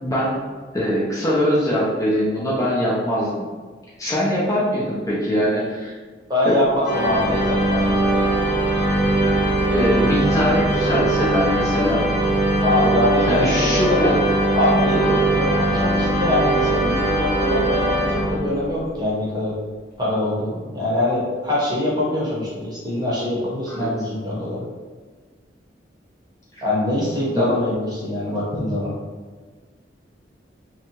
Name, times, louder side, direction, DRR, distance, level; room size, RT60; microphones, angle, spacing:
voice 1, 0.0-0.4 0.7-3.3 4.0-5.9 6.5-6.6 9.2-12.0 13.3-14.1 23.7-23.9 27.3-27.5 28.5-28.7, equal, 20° left, -7 dB, 0.4 m, -22 dB
voice 2, 6.3-8.2 12.6-14.1 14.5-19.5 20.0-24.6 26.6-28.9, left 1 dB, 20° right, -6 dB, 0.8 m, -23 dB
sound 1, 6.9-18.8, right 1 dB, 45° left, 0.7 m, -20 dB
2.7 x 2.2 x 2.9 m, 1.4 s
head